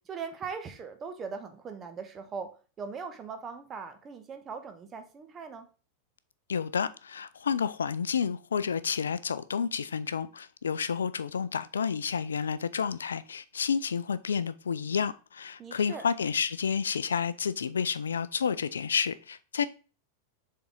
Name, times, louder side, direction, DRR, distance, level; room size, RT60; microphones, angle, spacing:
voice 1, 0.0-5.7 15.6-16.0, right 5 dB, 25° right, 1.0 m, -40 dB
voice 2, 6.5-19.6, left 6 dB, 70° left, 0.4 m, -30 dB
6.8 x 3.8 x 3.7 m
figure-of-eight pair, 90°, 0 cm